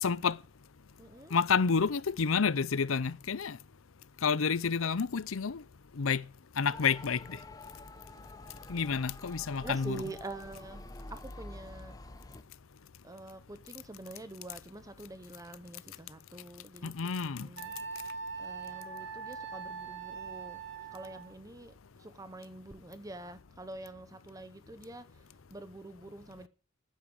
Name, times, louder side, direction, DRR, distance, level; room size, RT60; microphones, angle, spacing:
voice 1, 0.0-0.4 1.3-3.6 4.2-5.6 6.0-6.2 6.6-7.4 8.7-10.1 16.8-17.5, left 5 dB, 85° left, 0.7 m, -29 dB
voice 2, 1.0-1.3 9.6-12.0 13.0-16.9 17.2-17.7 18.4-20.6 20.9-21.7 22.0-25.0 25.5-26.5, right 2 dB, 15° right, 0.7 m, -46 dB
Motor vehicle (road) / Siren, 6.7-12.4, left 2 dB, 20° left, 0.9 m, -48 dB
Wind instrument woodwind instrument, 17.6-21.4, right 5 dB, 65° right, 1.6 m, -42 dB
10.5 x 10.0 x 9.0 m
head